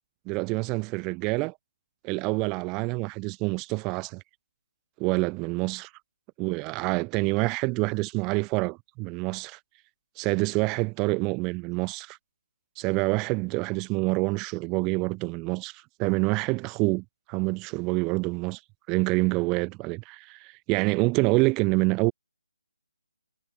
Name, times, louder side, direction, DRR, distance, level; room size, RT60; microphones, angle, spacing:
voice 1, 0.3-1.6 2.0-4.2 5.0-5.9 6.4-9.6 10.2-12.2 12.8-18.6 18.9-22.1, right 26 dB, 15° right, 2.2 m, -27 dB
hypercardioid pair, 165°, 0 cm